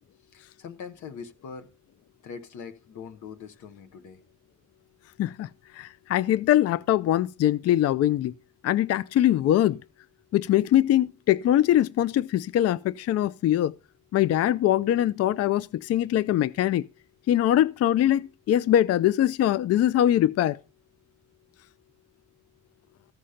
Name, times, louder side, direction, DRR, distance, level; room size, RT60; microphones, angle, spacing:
voice 1, 0.3-1.7 2.2-4.2, left 6 dB, 75° left, 1.1 m, -42 dB
voice 2, 5.2-8.3 8.6-9.8 10.3-13.7 14.1-16.8 17.3-20.6, left 12 dB, 55° left, 0.4 m, -22 dB
14.5 x 5.1 x 5.6 m
cardioid pair, 90°, 30 cm